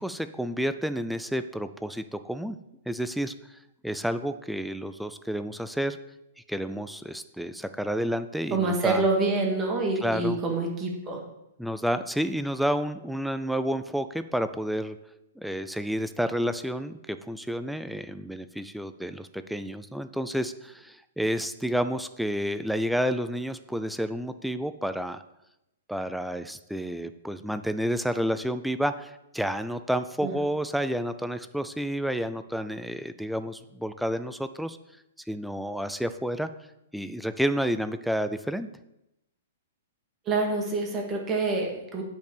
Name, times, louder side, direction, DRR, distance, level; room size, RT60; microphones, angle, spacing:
voice 1, 0.0-2.6 2.9-6.0 6.5-9.0 10.0-10.4 11.6-15.0 15.4-25.2 25.9-34.8 35.3-36.5 36.9-38.7, equal, ahead, 10 dB, 0.3 m, -30 dB
voice 2, 8.5-11.2 30.2-30.3 40.3-42.0, right 3 dB, 15° right, 0 dB, 1.5 m, -26 dB
9.1 x 5.3 x 6.7 m, 0.87 s
hypercardioid pair, 165°, 0 cm